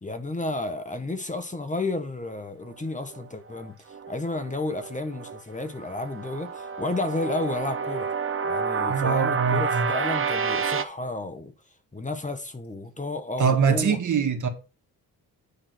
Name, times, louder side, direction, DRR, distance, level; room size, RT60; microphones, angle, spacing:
voice 1, 0.0-8.1 8.4-11.5 11.9-14.0, left 2 dB, 20° left, 1.3 m, -32 dB
sound 1, 3.1-5.4 5.8-10.8, right 5 dB, 35° right, 1.0 m, -29 dB
voice 2, 8.9-9.9 13.4-14.5, right 6 dB, 55° right, 1.8 m, -23 dB
9.9 x 3.8 x 6.1 m
cardioid pair, 75°, 36 cm